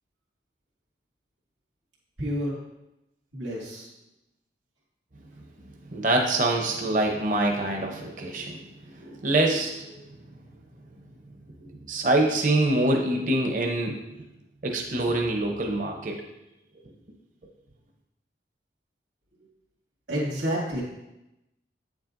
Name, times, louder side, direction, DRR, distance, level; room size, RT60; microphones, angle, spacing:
voice 1, 2.2-2.5 3.3-3.9 20.1-20.8, equal, 85° right, -6 dB, 2.3 m, -29 dB
voice 2, 5.9-8.6 9.0-10.0 11.6-13.9 14.6-16.2, right 2 dB, 45° right, 2 dB, 0.8 m, -25 dB
8.8 x 7.3 x 2.6 m, 0.92 s
head